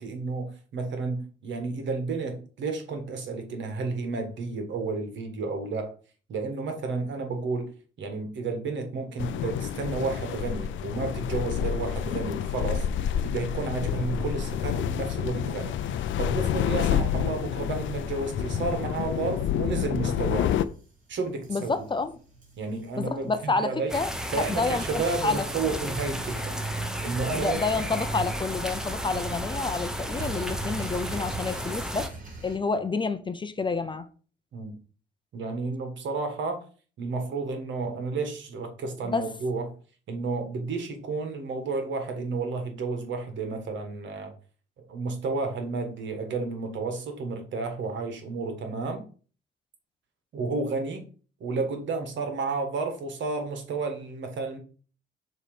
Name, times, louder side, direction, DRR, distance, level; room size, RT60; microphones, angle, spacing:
voice 1, 0.0-5.9 6.3-7.7 8.0-12.9 13.2-20.5 21.1-21.7 22.6-23.9 24.3-26.5 27.0-27.9 34.5-34.8 35.3-36.6 37.0-39.7 40.1-44.3 44.9-49.0 50.3-51.1 51.4-54.6, right 4 dB, 70° right, 1.6 m, -31 dB
sound 1, 9.2-20.7, left 9 dB, 75° left, 0.5 m, -29 dB
sound 2, 18.0-32.6, right 2 dB, 45° right, 3.0 m, -44 dB
voice 2, 21.5-22.1 23.0-24.1 24.4-25.4 27.4-32.1 32.4-34.1 39.0-39.3, left 4 dB, 25° left, 0.6 m, -29 dB
sound 3, 23.9-32.1, equal, 5° right, 0.9 m, -33 dB
6.7 x 3.1 x 5.0 m
cardioid pair, 90°, 20 cm